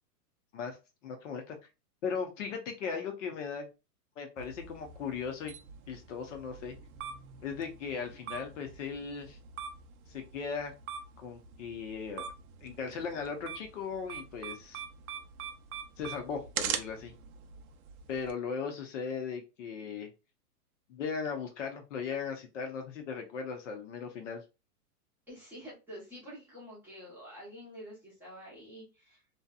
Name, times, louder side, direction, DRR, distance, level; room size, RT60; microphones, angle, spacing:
voice 1, 1.0-1.6 2.0-3.7 4.2-5.5 5.9-6.8 7.4-9.4 10.1-10.7 11.2-12.2 12.6-14.8 16.0-17.1 18.1-20.1 20.9-24.4, left 6 dB, 50° left, 5 dB, 0.7 m, -37 dB
sound 1, 4.4-18.3, right 7 dB, 65° right, 0.6 m, -43 dB
voice 2, 25.3-29.2, equal, 5° right, -9 dB, 0.7 m, -48 dB
2.7 x 2.2 x 2.2 m, 0.28 s
hypercardioid pair, 155°, 47 cm